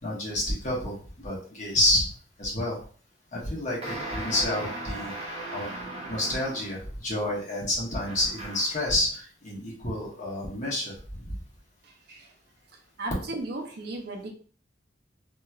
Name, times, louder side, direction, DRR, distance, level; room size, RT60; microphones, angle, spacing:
voice 1, 0.0-2.1 2.4-2.8 3.3-5.1 5.5-5.7 6.1-11.4, left 1 dB, 40° left, -5 dB, 1.2 m, -29 dB
sound 1, 3.8-6.8 8.1-8.9, right 1 dB, 35° right, 0.8 m, -37 dB
voice 2, 11.8-12.3 13.0-14.3, right 2 dB, 60° right, 2 dB, 0.6 m, -36 dB
2.9 x 2.8 x 2.3 m, 0.43 s
head